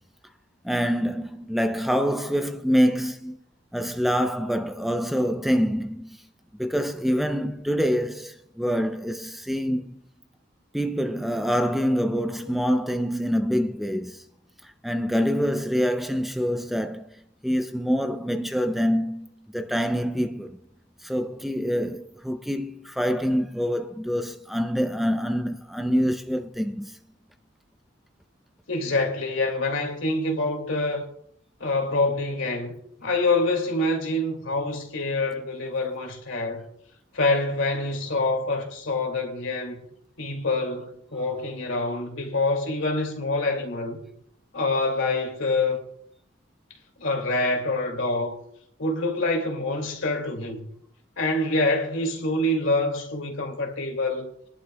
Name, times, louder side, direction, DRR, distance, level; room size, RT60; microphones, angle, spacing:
voice 1, 0.6-3.4 3.7-6.2 6.6-10.0 10.7-14.2 14.6-17.1 17.4-19.3 19.5-20.6 21.0-27.0, equal, ahead, 0.5 m, -25 dB
voice 2, 28.7-31.1 31.6-32.7 33.0-36.6 37.1-39.8 40.2-44.0 44.5-45.8 47.0-48.4 48.8-50.7 51.2-54.3, left 2 dB, 90° left, 2.3 m, -26 dB
23.5 x 11.0 x 2.2 m
head